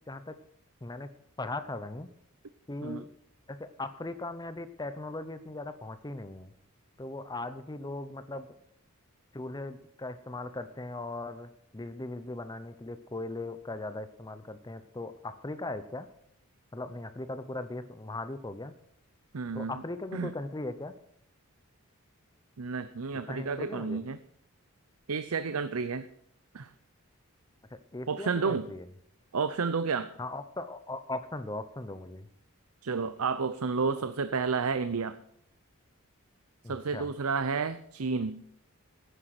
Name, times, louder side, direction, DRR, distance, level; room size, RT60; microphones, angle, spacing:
voice 1, 0.1-0.4 0.8-2.1 2.7-3.1 3.5-6.5 7.0-8.5 9.3-16.1 16.7-18.7 19.5-20.9 23.3-24.0 27.7-28.8 30.2-32.3 36.6-37.1, left 2 dB, 20° left, 11 dB, 0.7 m, -39 dB
voice 2, 19.3-19.7 20.1-20.3 22.6-24.2 25.1-26.1 26.5-26.7 28.1-28.7 29.3-30.1 32.8-35.2 36.7-38.4, right 5 dB, 75° right, 12 dB, 0.7 m, -31 dB
16.0 x 10.0 x 6.0 m, 0.71 s
head